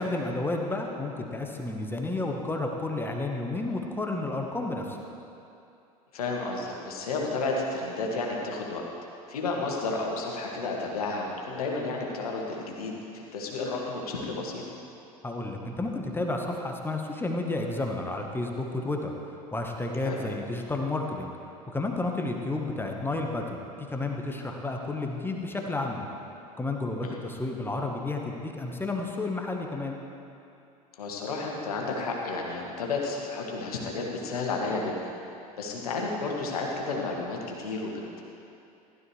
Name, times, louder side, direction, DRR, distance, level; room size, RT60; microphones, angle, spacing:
voice 1, 0.0-5.0 15.2-21.3 21.7-26.1 26.6-30.0, left 2 dB, 10° left, 2 dB, 1.2 m, -31 dB
voice 2, 6.1-8.8 9.3-14.6 20.0-20.2 27.0-27.2 30.9-35.1 35.6-38.2, left 3 dB, 70° left, -1 dB, 1.8 m, -32 dB
15.0 x 12.0 x 3.2 m, 2.7 s
figure-of-eight pair, 70°, 20 cm